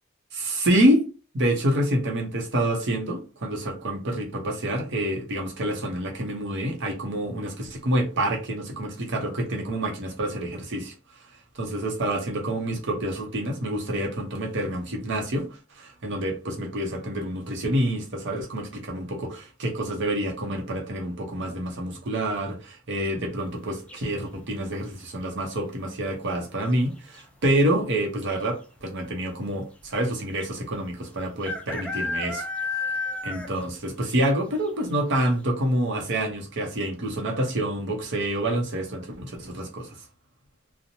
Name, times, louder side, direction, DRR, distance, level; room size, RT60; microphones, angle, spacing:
voice 1, 0.3-1.1 1.3-10.9 11.5-32.5 33.2-40.0, right 1 dB, 60° right, 0.7 m, -27 dB
sound 1, 23.9-24.4 26.2-26.6 26.8-26.9 27.1-27.7 28.4-28.5 28.8-28.9 30.4-30.5 31.4-33.7 34.1-34.2 34.7-34.8 35.2-35.3, left 3 dB, 5° left, 0.3 m, -31 dB
2.8 x 2.0 x 2.6 m
head